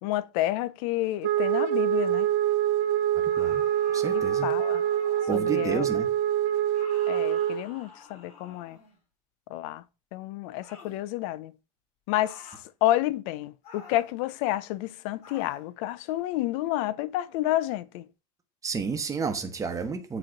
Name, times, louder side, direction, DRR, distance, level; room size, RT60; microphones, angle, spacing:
voice 1, 0.0-2.3 4.1-4.8 5.3-5.9 7.1-8.8 9.5-9.8 10.1-11.5 12.1-12.5 12.8-18.1, left 15 dB, 85° left, 0.6 m, -30 dB
Wind instrument woodwind instrument, 1.2-7.7, right 11 dB, 75° right, 0.9 m, -25 dB
sound 1, 3.3-5.6 6.7-9.0 10.6-11.0 12.2-12.7 13.6-14.2 15.2-15.7, left 4 dB, 40° left, 4.1 m, -48 dB
voice 2, 3.9-4.5 5.3-6.1 18.6-20.2, right 5 dB, 20° right, 1.0 m, -31 dB
7.7 x 3.1 x 5.8 m
cardioid pair, 145°, 17 cm